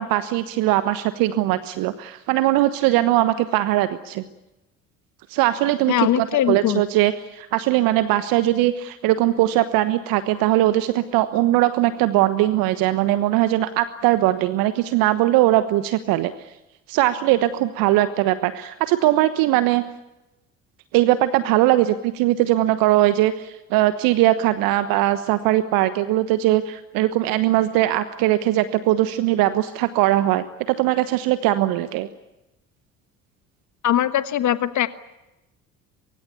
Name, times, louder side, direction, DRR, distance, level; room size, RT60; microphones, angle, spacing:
voice 1, 0.0-4.2 5.3-16.3 16.9-19.8 20.9-32.1, right 15 dB, 60° right, 12 dB, 1.2 m, -20 dB
voice 2, 5.9-6.8 33.8-34.9, left 11 dB, 45° left, 13 dB, 1.3 m, -21 dB
24.5 x 23.5 x 8.4 m, 0.98 s
figure-of-eight pair, 60°, 40 cm